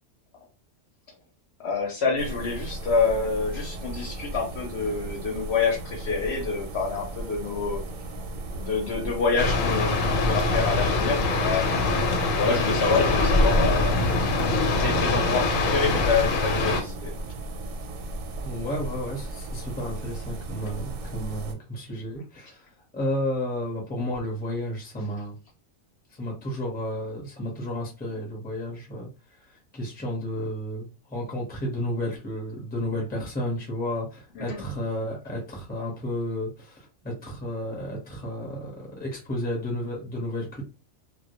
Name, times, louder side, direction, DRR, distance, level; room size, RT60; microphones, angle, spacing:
voice 1, 1.6-7.8 8.6-13.9 14.8-17.1 34.4-34.6, left 4 dB, 65° left, 1 dB, 0.8 m, -27 dB
sound 1, 2.2-21.5, right 2 dB, 90° right, 1.0 m, -36 dB
sound 2, 9.4-16.8, left 2 dB, 85° left, 1.0 m, -23 dB
voice 2, 18.4-25.4 26.1-40.6, left 1 dB, 10° left, -1 dB, 0.6 m, -32 dB
2.1 x 2.1 x 2.8 m, 0.32 s
omnidirectional pair, 1.3 m